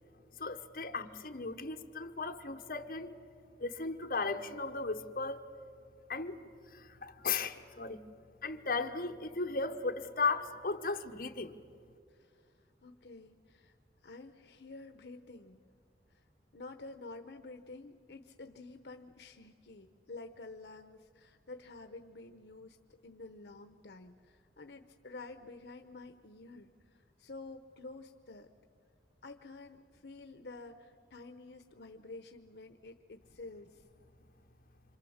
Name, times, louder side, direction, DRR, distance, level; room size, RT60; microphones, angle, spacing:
voice 1, 0.4-3.2 3.6-5.4 6.1-6.4 6.7-8.0 8.4-11.6, left 4 dB, 55° left, 1.3 m, -36 dB
voice 2, 12.1-13.7 14.0-15.6 16.1-16.2 16.5-22.8 23.0-28.5 29.2-33.8, left 3 dB, 75° left, 0.9 m, -50 dB
27.5 x 26.0 x 7.2 m
head